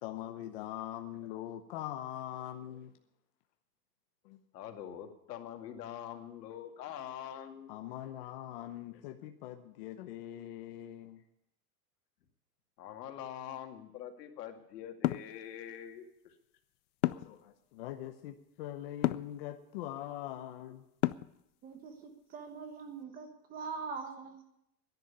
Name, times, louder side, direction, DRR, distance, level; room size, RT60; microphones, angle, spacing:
voice 1, 0.0-2.9 4.2-4.4 7.7-11.2 17.0-20.9, left 12 dB, 40° left, 6 dB, 0.8 m, -42 dB
voice 2, 4.5-7.7 12.8-16.3, left 10 dB, 90° left, 5 dB, 2.3 m, -44 dB
sound 1, 15.0-15.3 17.0-17.4 19.0-19.3 21.0-21.4, left 17 dB, 70° left, 0.6 m, -30 dB
voice 3, 21.6-24.4, right 5 dB, 20° right, 6 dB, 1.2 m, -43 dB
11.0 x 10.5 x 9.7 m, 0.81 s
supercardioid pair, 180°, 47 cm